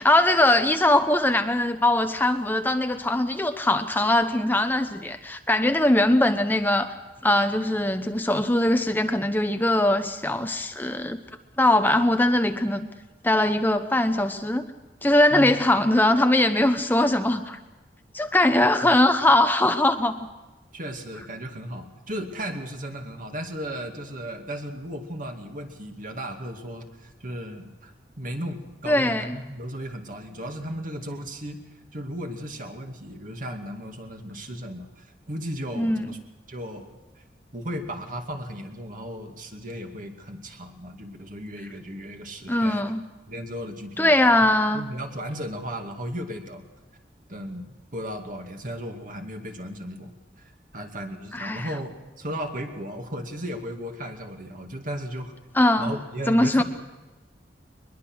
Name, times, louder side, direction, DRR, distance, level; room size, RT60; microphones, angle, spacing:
voice 1, 0.0-6.9 7.2-11.2 11.6-12.9 13.2-14.6 15.0-17.6 18.1-20.2 28.9-29.4 35.8-36.1 42.5-43.0 44.0-44.8 51.3-51.7 55.5-55.9 56.3-56.6, left 1 dB, 10° left, 8 dB, 0.8 m, -21 dB
voice 2, 20.7-31.6 31.9-36.2 36.5-36.9 37.5-42.8 43.3-44.5 44.7-46.7 47.3-50.1 50.7-55.3 55.8-56.6, equal, 50° right, 3 dB, 2.4 m, -35 dB
22.0 x 21.5 x 6.3 m, 1.1 s
head